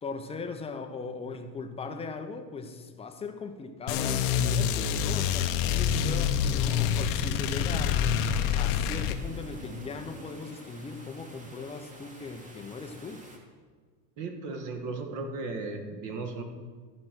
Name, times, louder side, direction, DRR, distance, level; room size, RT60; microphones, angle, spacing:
voice 1, 0.0-8.0 8.5-13.2, left 4 dB, 15° left, 6 dB, 0.6 m, -39 dB
sound 1, 3.9-9.2, left 8 dB, 60° left, 0.9 m, -26 dB
sound 2, 8.1-13.4, right 1 dB, 15° right, 1.4 m, -47 dB
voice 2, 14.2-16.4, right 3 dB, 45° right, 5 dB, 1.7 m, -36 dB
13.0 x 5.2 x 6.1 m, 1.5 s
supercardioid pair, 135°, 44 cm